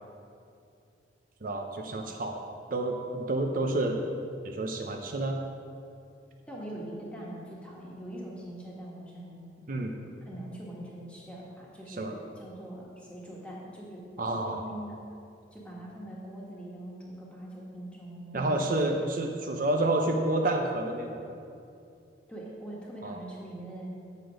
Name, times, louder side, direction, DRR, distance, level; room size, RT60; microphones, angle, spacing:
voice 1, 1.4-2.4 2.7-4.0 4.4-5.4 9.7-9.9 11.9-12.1 14.2-14.6 18.3-21.2 23.0-23.2, right 2 dB, 50° right, 2 dB, 0.5 m, -29 dB
voice 2, 6.5-9.6 10.3-15.0 15.5-18.8 22.3-23.9, right 1 dB, 5° left, -5 dB, 1.5 m, -42 dB
8.2 x 6.3 x 5.0 m, 2.5 s
head